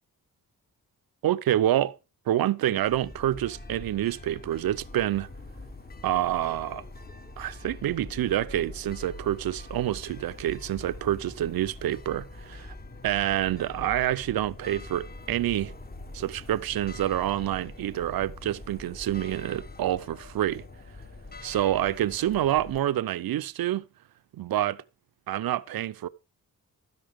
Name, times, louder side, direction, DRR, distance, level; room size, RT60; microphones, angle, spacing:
voice 1, 1.2-2.0 2.3-5.3 6.0-6.8 7.4-12.7 13.0-15.7 16.1-20.7 21.4-23.8 24.4-24.8 25.3-26.1, right 12 dB, 75° right, 0.6 m, -27 dB
sound 1, 2.8-22.8, left 2 dB, 25° left, 1.3 m, -44 dB
12.5 x 10.5 x 3.5 m
wide cardioid pair, 115°, 37 cm